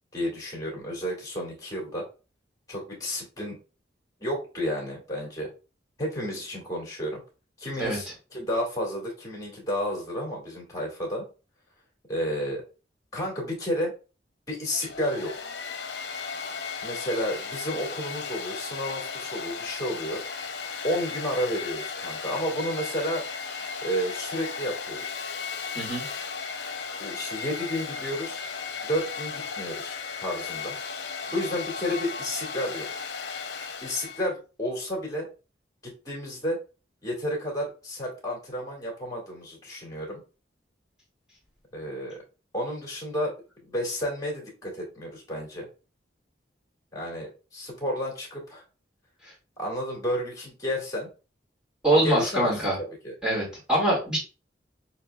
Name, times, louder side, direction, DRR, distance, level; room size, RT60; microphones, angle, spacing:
voice 1, 0.1-2.1 2.7-3.6 4.2-5.5 6.0-7.2 7.6-11.3 12.1-12.6 13.1-13.9 14.5-15.3 16.8-20.2 20.8-23.2 23.8-25.2 27.0-28.4 28.8-30.8 31.3-32.9 33.8-35.3 35.8-36.6 37.0-40.2 41.7-42.2 42.5-43.3 43.6-45.7 46.9-48.6 49.6-51.1 52.0-52.5 53.0-53.1, equal, 20° left, -2 dB, 2.1 m, -31 dB
Domestic sounds home sounds, 14.7-34.3, left 5 dB, 70° left, 0.7 m, -35 dB
voice 2, 51.8-52.8 53.2-54.2, right 1 dB, 5° right, -4 dB, 2.0 m, -24 dB
6.5 x 3.0 x 2.3 m, 0.33 s
head